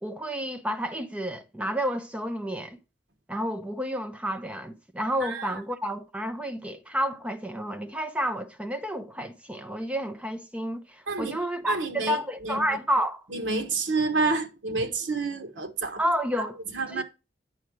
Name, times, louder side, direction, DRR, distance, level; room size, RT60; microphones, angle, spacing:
voice 1, 0.0-2.8 3.3-13.2 16.0-16.6 16.9-17.0, equal, 5° right, 0.7 m, -30 dB
voice 2, 11.1-11.4 11.7-12.2 12.4-12.6 13.3-16.0 16.7-17.0, right 3 dB, 90° right, 1.3 m, -28 dB
8.7 x 5.4 x 4.6 m
head